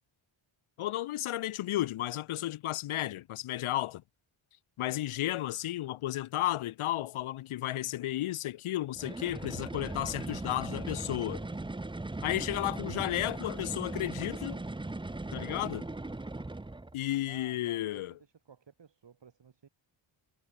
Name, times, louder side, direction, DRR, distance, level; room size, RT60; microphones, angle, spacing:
voice 1, 0.8-4.0 4.8-11.5 12.2-14.6 15.3-15.9 16.9-18.1, left 14 dB, 75° left, 0.7 m, -33 dB
sound 1, 8.9-17.0, right 2 dB, 10° right, 0.8 m, -38 dB
voice 2, 17.2-19.7, right 6 dB, 55° right, 6.2 m, -56 dB
cardioid pair, 95°, 49 cm